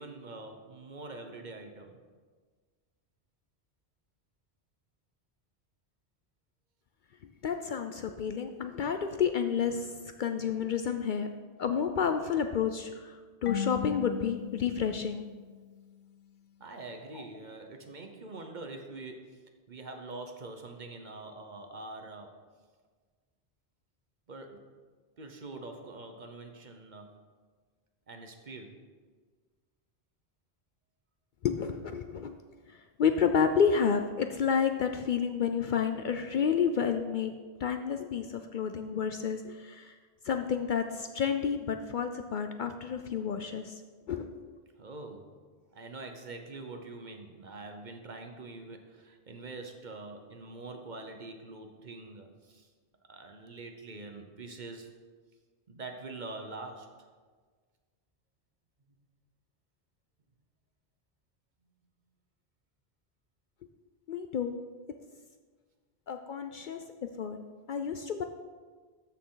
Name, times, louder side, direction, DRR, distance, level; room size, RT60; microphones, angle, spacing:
voice 1, 0.0-2.0 16.6-22.4 24.3-24.7 25.2-27.2 28.1-28.8 44.8-45.3 45.7-52.7 53.1-54.9 55.7-56.9, right 3 dB, 45° right, 5 dB, 1.0 m, -44 dB
voice 2, 7.4-11.3 11.6-15.2 17.1-17.2 31.4-32.4 32.7-37.3 37.6-39.9 40.2-43.8 44.1-44.3 64.1-64.6 66.1-67.4 67.7-68.2, left 7 dB, 60° left, 7 dB, 0.6 m, -30 dB
Marimba xylophone / Wood, 13.5-16.2, left 9 dB, 90° left, 1.0 m, -39 dB
13.0 x 6.5 x 3.9 m, 1.5 s
omnidirectional pair, 1.1 m